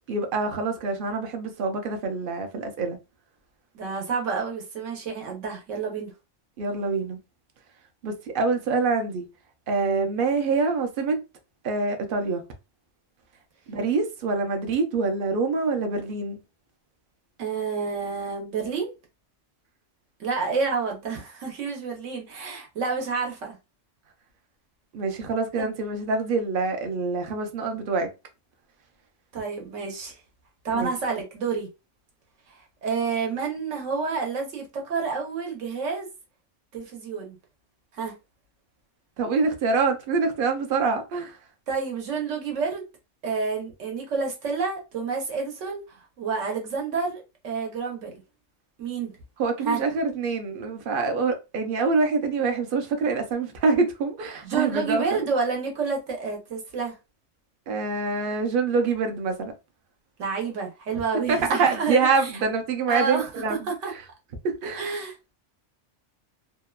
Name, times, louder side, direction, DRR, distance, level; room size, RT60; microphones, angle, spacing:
voice 1, 0.1-3.0 6.6-7.2 8.0-9.3 9.7-11.2 11.6-12.4 13.7-16.4 24.9-28.1 30.8-30.9 39.2-41.4 49.4-55.2 57.7-59.5 61.3-63.7 64.4-64.8, right 4 dB, 55° right, 0.6 m, -25 dB
voice 2, 3.7-6.1 17.4-18.9 20.2-23.6 25.6-25.7 29.3-30.2 30.6-31.7 32.8-36.1 36.7-37.4 37.9-38.1 41.7-42.8 43.2-45.8 46.2-48.2 48.8-49.1 49.6-49.8 54.4-56.9 60.2-62.1 62.9-63.9 64.7-65.1, right 5 dB, 80° right, 1.2 m, -29 dB
2.8 x 2.1 x 2.2 m
omnidirectional pair, 1.3 m